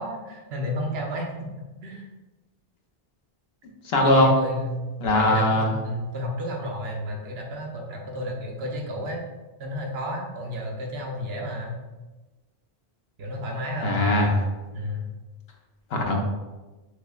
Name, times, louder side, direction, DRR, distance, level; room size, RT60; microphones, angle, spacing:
voice 1, 0.0-1.5 1.8-2.1 4.0-4.8 5.2-9.2 9.6-11.8 13.2-14.1 14.7-15.1, equal, 75° right, 0 dB, 0.9 m, -32 dB
voice 2, 3.8-4.3 5.0-5.7 13.8-14.5 15.9-16.2, left 1 dB, 80° left, 1 dB, 0.9 m, -20 dB
5.9 x 2.0 x 2.3 m, 1.1 s
omnidirectional pair, 1.0 m